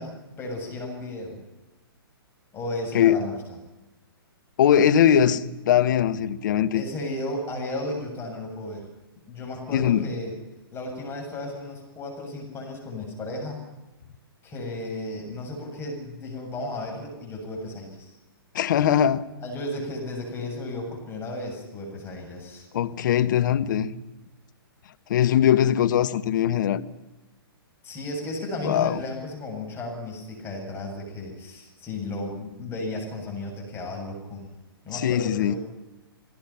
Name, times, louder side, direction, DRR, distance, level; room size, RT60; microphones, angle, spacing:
voice 1, 0.0-1.4 2.5-3.4 6.7-8.9 9.3-10.3 10.7-13.6 14.4-18.2 19.4-22.7 27.8-34.5 34.8-35.6, left 2 dB, 20° left, 7.6 m, -34 dB
voice 2, 4.6-6.8 9.7-10.0 18.5-19.3 22.7-23.9 25.1-26.9 28.6-29.0 34.9-35.6, left 9 dB, 55° left, 1.3 m, -21 dB
28.0 x 19.0 x 5.9 m
figure-of-eight pair, 120°, 13 cm